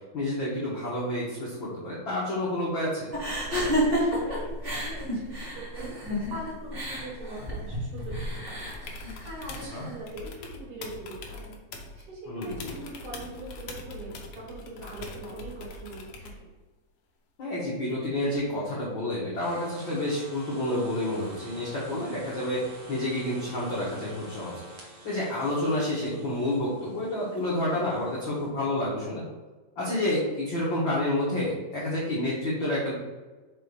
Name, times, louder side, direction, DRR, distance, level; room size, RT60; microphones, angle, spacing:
voice 1, 0.1-3.1 9.7-9.8 12.3-12.8 17.4-24.5 25.0-29.2 29.8-32.9, left 1 dB, 65° left, -7 dB, 1.2 m, -29 dB
sound 1, 3.1-9.9, equal, 35° right, 0.9 m, -31 dB
voice 2, 3.6-8.7 9.0-11.6 12.0-16.5, right 2 dB, 60° right, -3 dB, 2.4 m, -42 dB
sound 2, 8.5-9.7 10.1-12.0 12.4-16.4 18.3-18.4, left 3 dB, 85° left, 1.5 m, -42 dB
sound 3, 19.4-28.5, right 2 dB, 75° right, 0.9 m, -48 dB
5.8 x 3.2 x 5.4 m, 1.3 s
omnidirectional pair, 4.2 m